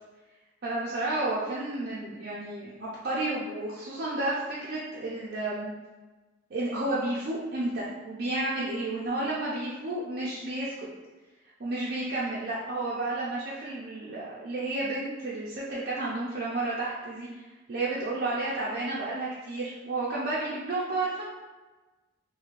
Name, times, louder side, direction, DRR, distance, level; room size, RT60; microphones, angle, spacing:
voice 1, 0.6-5.7 6.5-10.9 11.6-21.2, right 2 dB, 55° right, -8 dB, 0.5 m, -31 dB
3.1 x 2.7 x 2.4 m, 1.2 s
head